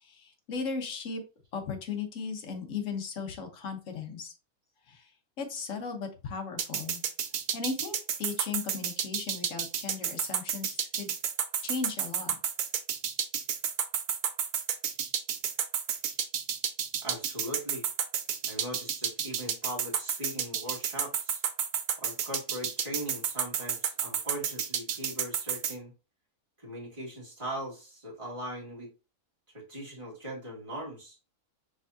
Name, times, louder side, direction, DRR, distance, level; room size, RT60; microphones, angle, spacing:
voice 1, 0.0-1.2 1.5-4.3 4.9-5.1 5.4-7.0 7.5-11.1 11.6-12.4, left 5 dB, 60° left, 4 dB, 1.3 m, -37 dB
sound 1, 6.6-25.7, right 8 dB, 90° right, 1.2 m, -30 dB
voice 2, 17.0-17.8 18.5-21.4 22.0-25.9 26.6-28.9 29.5-31.2, equal, 20° right, -5 dB, 1.9 m, -40 dB
5.1 x 3.4 x 2.6 m, 0.32 s
omnidirectional pair, 1.6 m